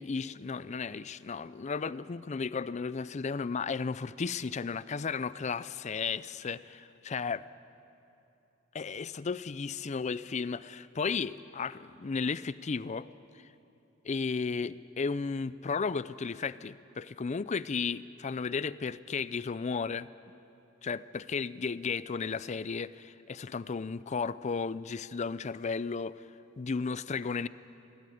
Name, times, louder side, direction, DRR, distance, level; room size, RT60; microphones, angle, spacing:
voice 1, 0.0-7.4 8.7-13.1 14.0-20.1 20.8-26.2 26.6-27.5, left 5 dB, 35° left, 17 dB, 0.5 m, -34 dB
21.0 x 16.0 x 9.3 m, 2.8 s
head